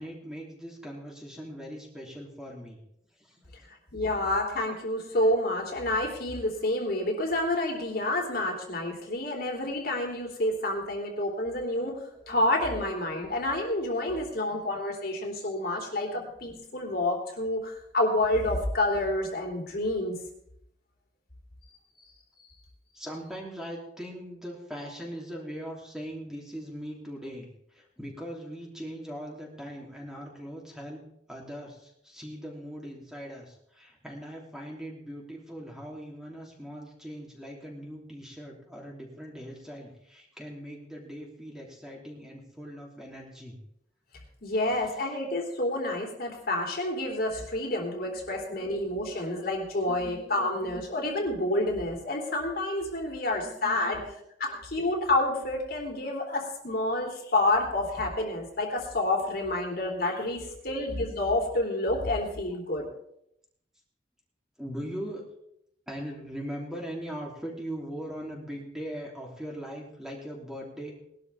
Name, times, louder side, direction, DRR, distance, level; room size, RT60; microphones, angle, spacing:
voice 1, 0.0-2.8 3.2-3.7 12.0-12.3 12.8-12.9 14.0-14.7 16.1-16.2 22.9-31.0 31.3-43.6 48.0-48.8 49.1-49.4 49.9-50.8 53.3-54.1 59.6-59.7 60.2-60.8 64.6-65.2 65.9-71.0, equal, 5° right, -2 dB, 3.1 m, -41 dB
voice 2, 3.9-20.2 44.4-54.0 54.4-62.9, left 1 dB, 55° left, 1 dB, 3.2 m, -29 dB
20.5 x 12.5 x 3.5 m, 0.74 s
head